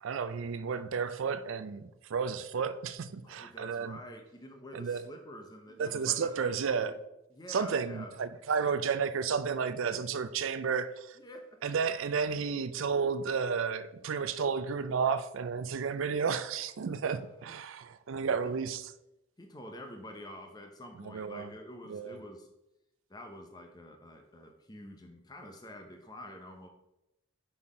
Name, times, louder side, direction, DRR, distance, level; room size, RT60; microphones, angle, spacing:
voice 1, 0.0-4.0 4.7-5.1 5.8-7.0 7.5-11.2 11.6-18.9 21.1-21.5 21.9-22.1, right 6 dB, 70° right, 0.4 m, -32 dB
voice 2, 3.2-7.0 7.3-8.1 8.6-8.7 9.7-10.2 11.2-11.6 17.1-17.2 18.3-18.5 19.4-22.5 23.1-26.7, left 1 dB, 20° left, 0.7 m, -48 dB
5.6 x 4.3 x 4.8 m
head